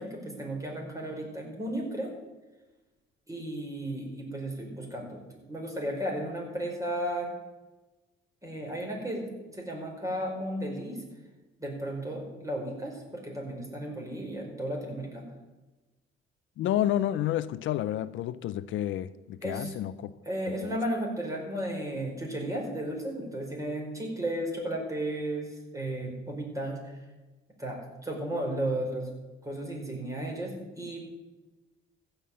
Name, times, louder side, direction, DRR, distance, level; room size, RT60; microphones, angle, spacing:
voice 1, 0.0-2.1 3.3-7.3 8.4-11.0 11.6-15.2 19.4-19.8 20.2-25.5 25.7-26.8 27.6-29.1 29.4-31.0, right 1 dB, 15° right, 4.7 m, -34 dB
voice 2, 16.6-20.1 20.6-20.8, left 12 dB, 75° left, 0.5 m, -30 dB
15.0 x 5.7 x 8.5 m
cardioid pair, 90°, 20 cm